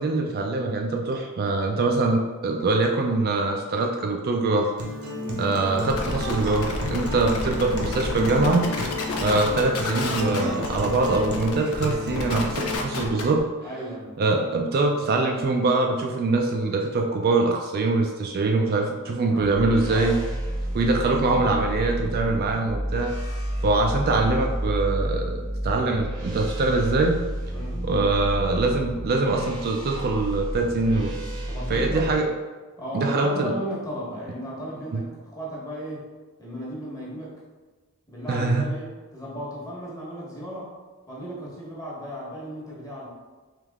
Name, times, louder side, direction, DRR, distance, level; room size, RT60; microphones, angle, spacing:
voice 1, 0.0-4.7 5.4-8.7 9.2-13.4 14.2-20.2 20.7-23.1 23.6-27.2 27.8-31.1 31.7-32.3 32.9-33.5 34.9-35.0 38.3-38.7, right 3 dB, 45° right, 2 dB, 0.4 m, -23 dB
Acoustic guitar, 4.8-12.8, left 1 dB, 75° right, 0.7 m, -32 dB
sound 1, 5.9-13.4, left 2 dB, 70° left, 0.6 m, -30 dB
voice 2, 13.6-14.1 19.3-20.2 27.5-27.8 31.5-32.1 32.8-36.0 36.4-37.4 38.1-40.7 41.1-43.1, equal, 15° left, -5 dB, 1.2 m, -35 dB
sound 2, 19.3-32.1, right 1 dB, 20° right, 0.7 m, -30 dB
3.5 x 3.2 x 3.5 m, 1.3 s
head